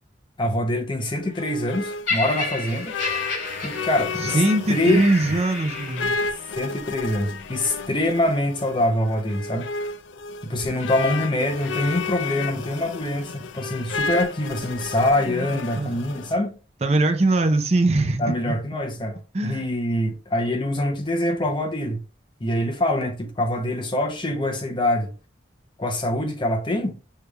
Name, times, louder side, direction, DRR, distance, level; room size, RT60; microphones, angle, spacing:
voice 1, 0.4-2.9 3.6-4.4 4.7-5.0 6.6-9.7 10.4-16.5 18.2-22.0 22.4-25.1 25.8-26.9, left 1 dB, 25° left, 0.7 m, -24 dB
sound 1, 1.0-16.3, left 4 dB, 90° left, 0.4 m, -32 dB
Laughter, 2.1-6.3 7.1-7.3, left 3 dB, 70° left, 2.5 m, -31 dB
voice 2, 4.2-6.1 15.3-15.5 15.7-15.9 16.8-18.5 19.3-19.7, right 2 dB, 35° right, 0.5 m, -21 dB
6.6 x 3.2 x 2.2 m
head